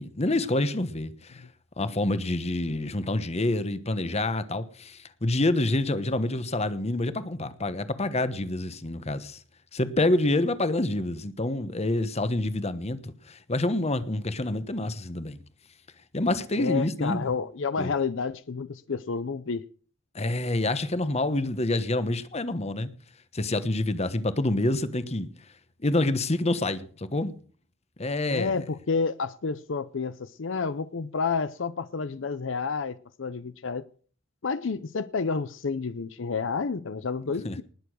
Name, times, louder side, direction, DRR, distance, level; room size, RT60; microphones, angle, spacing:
voice 1, 0.0-1.4 1.8-9.4 9.7-15.4 16.1-17.3 17.8-17.9 20.1-22.9 23.3-25.3 25.8-27.4 28.0-28.6 37.4-37.6, left 2 dB, 35° left, 1.1 m, -27 dB
voice 2, 16.6-19.6 28.3-33.9 34.4-37.6, left 5 dB, 70° left, 0.6 m, -30 dB
19.5 x 7.0 x 6.2 m
head